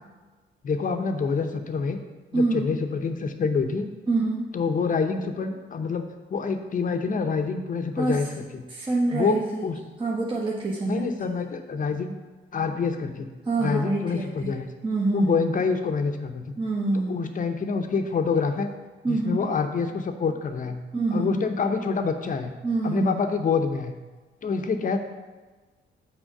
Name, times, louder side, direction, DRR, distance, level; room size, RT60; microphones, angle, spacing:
voice 1, 0.6-2.0 2.3-3.9 4.5-8.3 8.5-8.7 9.1-9.8 10.8-12.1 12.5-13.3 13.6-14.7 15.1-16.5 17.1-18.7 19.1-20.8 21.1-22.5 22.8-23.9 24.4-25.0, left 5 dB, 40° left, 6 dB, 0.8 m, -26 dB
voice 2, 2.3-2.7 4.1-4.5 8.0-8.2 8.7-9.7 10.0-11.0 13.4-14.5 14.8-15.3 16.6-17.3 19.0-19.4 20.9-21.4 22.6-23.2, right 2 dB, 25° right, -3 dB, 1.1 m, -26 dB
6.3 x 4.4 x 6.5 m, 1.3 s
cardioid pair, 90°, 20 cm